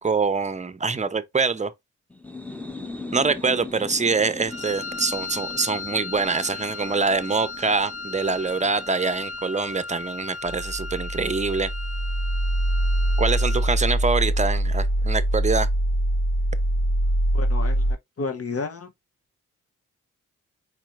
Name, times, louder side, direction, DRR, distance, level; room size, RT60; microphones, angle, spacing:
voice 1, 0.0-1.7 3.1-11.7 13.2-15.7, right 4 dB, 20° right, 0.7 m, -24 dB
sound 1, 2.1-9.6, left 3 dB, 5° left, 0.8 m, -40 dB
Wind instrument woodwind instrument, 4.5-13.7, left 4 dB, 20° left, 2.1 m, -36 dB
sound 2, 10.4-17.9, right 1 dB, 75° left, 3.3 m, -23 dB
voice 2, 17.3-17.9 18.2-18.9, left 4 dB, 45° left, 0.8 m, -31 dB
4.5 x 4.4 x 2.5 m
cardioid pair, 55°, 33 cm